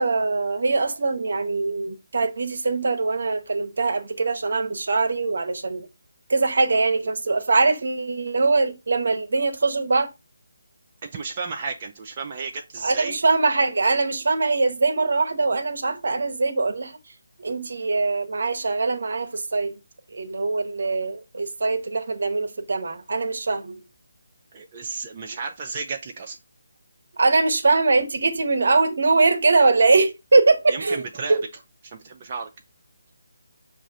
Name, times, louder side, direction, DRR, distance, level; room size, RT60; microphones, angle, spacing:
voice 1, 0.0-5.9 6.3-10.1 12.8-17.0 17.4-19.7 20.1-23.8 27.2-31.0 31.3-31.4, right 3 dB, 60° right, 0.7 m, -22 dB
voice 2, 11.0-13.2 24.5-26.4 30.7-31.4 31.8-32.5, right 4 dB, 35° right, 0.4 m, -33 dB
6.0 x 2.4 x 2.6 m
figure-of-eight pair, 155°, 0 cm